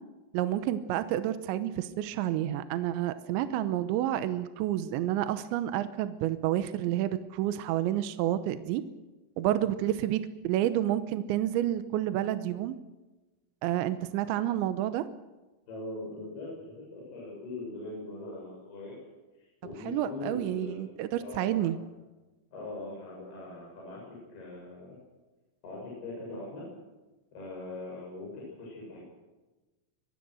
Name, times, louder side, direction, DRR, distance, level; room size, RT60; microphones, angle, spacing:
voice 1, 0.3-8.8 9.4-12.8 13.6-15.0 19.9-21.8, right 12 dB, 75° right, 11 dB, 2.9 m, -29 dB
voice 2, 15.7-19.0 19.4-20.9 21.2-21.7 22.5-25.0 25.6-26.7 27.3-29.0, left 2 dB, 50° left, -4 dB, 8.7 m, -41 dB
25.0 x 22.5 x 6.3 m, 1.1 s
omnidirectional pair, 5.9 m